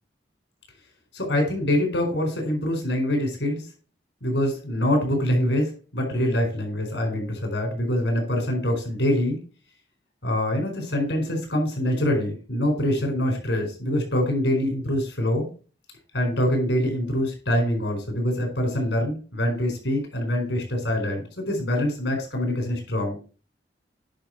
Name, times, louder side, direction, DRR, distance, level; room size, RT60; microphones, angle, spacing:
voice 1, 1.1-3.7 4.2-9.4 10.2-15.5 16.1-23.2, left 1 dB, 85° left, 2 dB, 4.6 m, -25 dB
10.5 x 5.5 x 4.6 m, 0.36 s
head